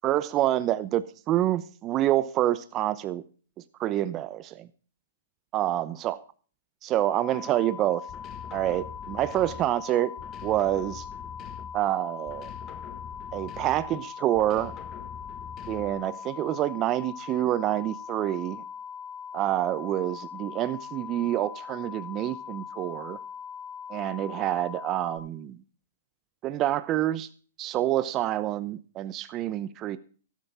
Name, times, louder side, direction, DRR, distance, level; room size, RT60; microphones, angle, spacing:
voice 1, 0.0-3.2 3.8-4.7 5.5-6.2 6.8-8.0 8.5-10.1 10.4-11.0 11.7-12.5 13.3-14.7 15.7-18.6 19.3-23.2 23.9-25.6 26.4-27.3 27.6-30.0, right 13 dB, 30° right, 14 dB, 0.8 m, -27 dB
sound 1, 7.0-25.2, left 7 dB, 5° right, 3.3 m, -41 dB
sound 2, 8.1-9.8 10.2-11.9 12.3-14.0 14.3-16.1, left 8 dB, 30° left, 1.6 m, -44 dB
13.0 x 11.5 x 3.6 m, 0.40 s
hypercardioid pair, 125°, 0 cm